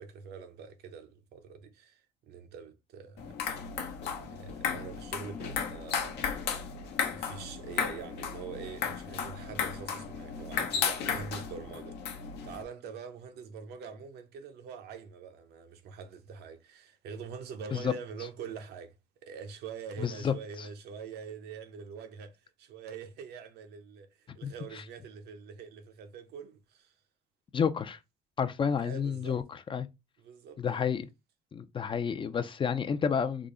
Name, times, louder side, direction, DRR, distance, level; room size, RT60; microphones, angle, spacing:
voice 1, 0.0-3.7 4.0-6.3 7.1-12.2 12.4-18.9 19.2-27.0 28.8-29.4 30.2-30.9, right 6 dB, 75° right, 0.7 m, -44 dB
sound 1, 3.2-12.6, left 6 dB, 80° left, 0.8 m, -34 dB
voice 2, 20.0-20.7 24.4-24.5 27.5-28.0 28.4-29.4 29.7-29.9 30.6-31.1 31.5-33.5, left 7 dB, 30° left, 0.4 m, -30 dB
3.6 x 2.0 x 3.7 m
cardioid pair, 110°, 17 cm